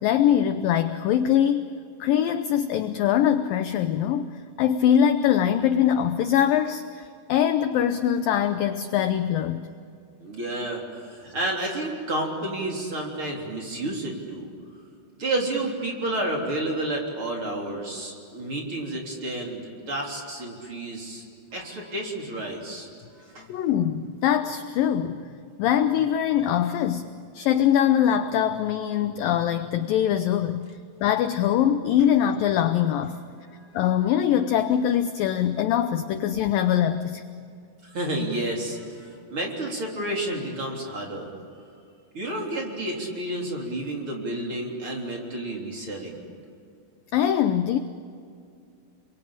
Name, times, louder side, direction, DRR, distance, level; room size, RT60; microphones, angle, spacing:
voice 1, 0.0-9.7 23.5-25.2 25.6-30.7 31.0-33.2 33.7-37.2 47.1-47.8, left 10 dB, 75° left, 9 dB, 2.1 m, -23 dB
voice 2, 10.2-14.5 15.2-21.2 21.5-22.9 23.2-23.5 37.8-41.3 42.1-46.2, right 1 dB, 30° right, -1 dB, 4.0 m, -30 dB
29.5 x 23.0 x 8.7 m, 2.3 s
omnidirectional pair, 4.8 m